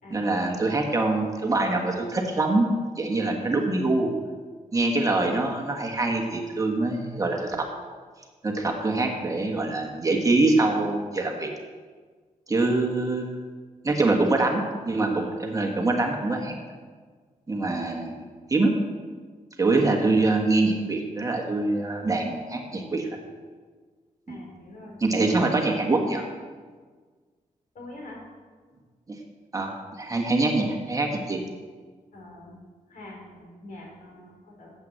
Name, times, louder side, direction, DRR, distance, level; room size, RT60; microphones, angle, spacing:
voice 1, 0.1-2.7 3.0-4.1 4.7-7.7 8.4-11.5 12.5-13.4 13.8-16.5 17.5-18.1 18.5-18.7 19.6-23.1 24.3-24.4 25.0-26.2 29.1-29.2 29.5-31.4, right 2 dB, 25° right, 1 dB, 1.4 m, -24 dB
voice 2, 24.3-25.0 27.7-28.2 32.1-32.6 32.9-34.7, left 1 dB, 70° left, -1 dB, 3.7 m, -44 dB
9.3 x 7.8 x 7.8 m, 1.5 s
wide cardioid pair, 140°, 14 cm